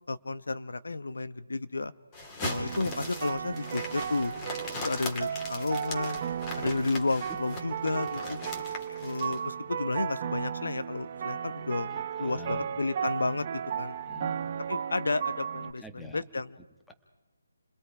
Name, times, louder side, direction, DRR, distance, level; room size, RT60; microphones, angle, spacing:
voice 1, 0.1-1.9 2.4-4.3 4.8-6.2 6.6-8.4 9.0-11.9 12.2-13.5 13.8-14.0 14.7-16.5, left 3 dB, 80° left, 13 dB, 1.1 m, -32 dB
sound 1, 2.1-9.4, left 2 dB, 20° left, 2.6 m, -39 dB
sound 2, 2.4-15.7, right 8 dB, 35° right, 0.7 m, -35 dB
voice 2, 11.9-12.8 14.1-14.5 15.7-16.2 16.6-16.9, left 1 dB, 5° left, 5 dB, 1.3 m, -47 dB
29.0 x 20.5 x 4.9 m, 1.1 s
hypercardioid pair, 165°, 0 cm